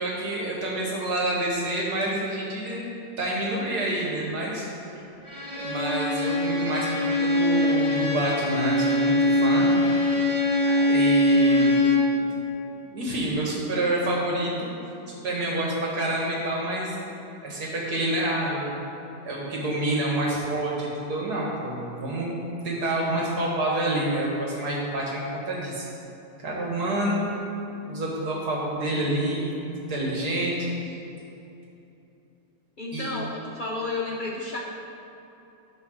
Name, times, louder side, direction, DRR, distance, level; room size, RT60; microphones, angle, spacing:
voice 1, 0.0-2.9 3.2-5.0 5.5-9.7 10.3-11.8 12.2-12.3 12.8-14.7 15.1-17.1 17.4-18.8 19.2-22.3 22.6-25.9 26.4-27.2 27.9-30.7 32.9-33.1, right 1 dB, 85° right, -4 dB, 2.3 m, -28 dB
Bowed string instrument, 5.2-12.2, left 2 dB, 30° right, 1.3 m, -22 dB
voice 2, 32.8-34.6, left 3 dB, 45° left, -3 dB, 0.7 m, -31 dB
11.5 x 3.9 x 6.4 m, 2.9 s
omnidirectional pair, 1.7 m